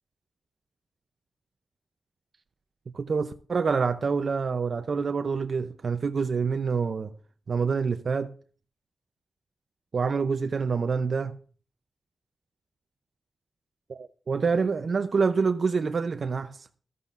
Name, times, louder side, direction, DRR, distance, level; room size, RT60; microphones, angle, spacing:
voice 1, 2.9-7.1 7.5-8.3 9.9-11.4 13.9-16.7, right 5 dB, 65° right, 0.5 m, -27 dB
13.5 x 13.5 x 2.5 m
cardioid pair, 65°, 0 cm